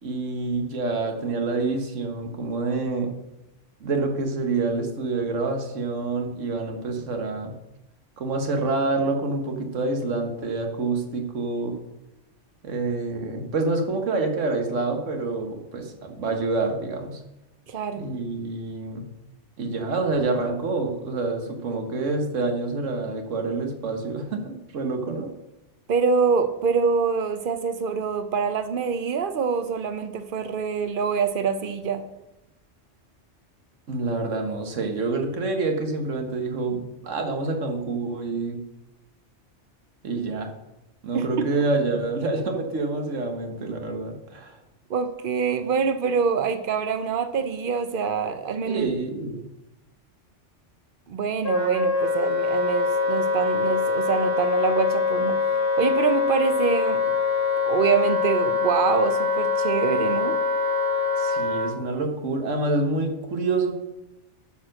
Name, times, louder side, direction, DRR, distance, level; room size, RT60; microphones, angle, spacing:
voice 1, 0.0-3.1 3.8-7.5 8.2-11.8 12.6-17.2 18.0-19.1 19.6-25.3 33.9-38.6 40.0-40.5 41.0-44.6 48.7-49.4 61.2-63.8, right 3 dB, 90° right, 5 dB, 1.5 m, -27 dB
voice 2, 17.7-18.1 25.9-32.1 41.1-41.3 44.9-48.9 51.1-57.2 57.7-60.4, right 6 dB, 50° right, 10 dB, 0.8 m, -25 dB
Wind instrument woodwind instrument, 51.4-61.7, left 4 dB, 55° left, 2.0 m, -24 dB
9.2 x 4.6 x 6.3 m, 0.96 s
omnidirectional pair, 1.2 m